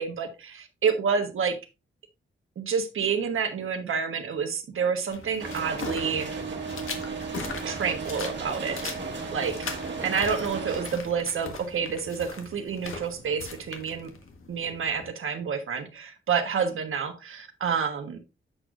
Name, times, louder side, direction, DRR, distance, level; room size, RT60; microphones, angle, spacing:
voice 1, 0.0-1.6 2.6-6.3 7.6-9.0 9.3-9.7 10.0-14.1 14.5-18.2, right 6 dB, 85° right, 6 dB, 1.3 m, -29 dB
sound 1, 5.1-15.1, left 4 dB, 85° left, 1.5 m, -40 dB
sound 2, 5.4-10.9, right 4 dB, 60° right, 1.5 m, -35 dB
7.7 x 6.4 x 2.5 m, 0.27 s
wide cardioid pair, 180°, 21 cm